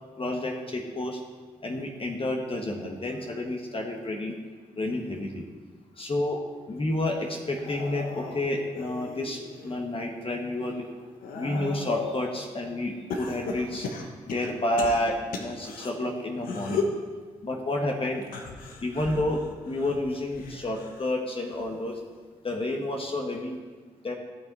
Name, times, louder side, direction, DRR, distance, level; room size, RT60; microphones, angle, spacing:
voice 1, 0.2-1.2 1.6-4.4 4.8-5.4 6.0-6.4 6.7-10.9 11.3-13.9 14.3-16.8 17.4-18.2 18.8-22.0 22.4-23.6 24.0-24.1, left 1 dB, 40° left, 1 dB, 1.4 m, -30 dB
sound 1, 7.4-9.8 10.3-12.2 13.1-15.9 16.4-17.0 18.2-21.1 21.5-21.9 23.0-23.1, left 4 dB, 85° left, 1.0 m, -36 dB
15.0 x 5.9 x 4.0 m, 1.5 s
supercardioid pair, 50°, 14 cm